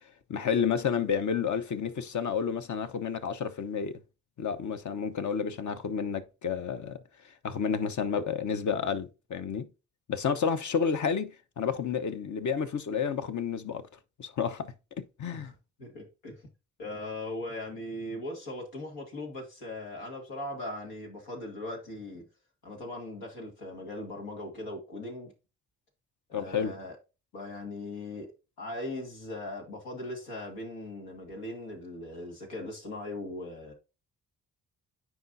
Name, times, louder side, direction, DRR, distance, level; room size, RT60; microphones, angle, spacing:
voice 1, 0.3-4.0 4.4-7.0 7.4-9.7 10.1-13.8 14.2-15.5 26.3-26.7, left 6 dB, 50° left, 0.9 m, -30 dB
voice 2, 15.8-16.5 16.8-22.2 22.6-25.3 26.3-27.0 27.3-28.3 28.6-33.7, left 1 dB, 85° left, 2.0 m, -39 dB
9.3 x 4.8 x 2.7 m
hypercardioid pair, 45°, 37 cm